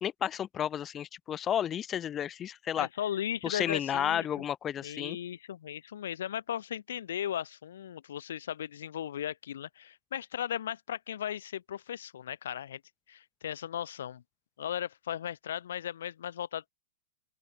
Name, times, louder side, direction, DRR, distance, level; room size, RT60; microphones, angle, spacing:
voice 1, 0.0-2.9 3.4-5.2, left 10 dB, 25° left, 0.3 m, -32 dB
voice 2, 2.8-4.3 4.8-12.8 13.1-14.2 14.6-16.7, left 10 dB, 70° left, 1.3 m, -36 dB
open air
hypercardioid pair, 125°, 0 cm